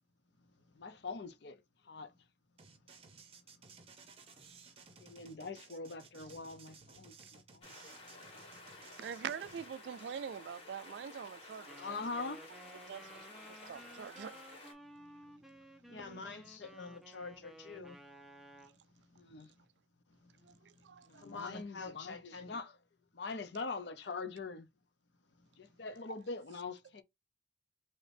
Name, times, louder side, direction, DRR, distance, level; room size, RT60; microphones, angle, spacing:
voice 1, 0.7-2.1 5.0-7.7 8.0-8.2 11.8-12.5 13.3-13.4 19.2-19.5 21.1-22.8 23.1-24.7 25.6-27.0, left 4 dB, 65° left, 0.6 m, -43 dB
sound 1, 2.6-9.7, right 5 dB, 30° right, 0.8 m, -57 dB
sound 2, 7.6-14.7, left 2 dB, 35° left, 1.6 m, -53 dB
voice 2, 9.0-12.0 12.9-13.0 13.7-14.4 20.9-21.1, right 7 dB, 70° right, 0.3 m, -43 dB
Wind instrument woodwind instrument, 11.7-18.8, right 1 dB, ahead, 0.5 m, -55 dB
voice 3, 15.9-18.0 21.2-22.6, left 4 dB, 80° left, 1.0 m, -47 dB
5.0 x 2.9 x 2.6 m
head